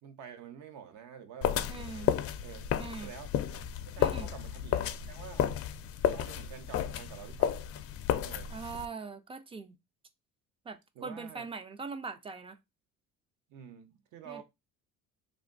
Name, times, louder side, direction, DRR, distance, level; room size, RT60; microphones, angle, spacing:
voice 1, 0.0-2.2 2.4-2.7 3.0-3.3 3.9-5.5 6.1-7.6 8.2-8.5 10.9-11.5 13.5-14.4, right 8 dB, 65° right, 0.9 m, -48 dB
sound 1, 1.4-8.8, left 10 dB, 50° left, 0.4 m, -32 dB
voice 2, 1.7-2.1 2.8-3.1 4.0-4.3 8.5-9.7 10.7-12.6 14.3-14.4, right 4 dB, 20° right, 0.3 m, -41 dB
3.3 x 2.6 x 3.8 m
cardioid pair, 140°, 31 cm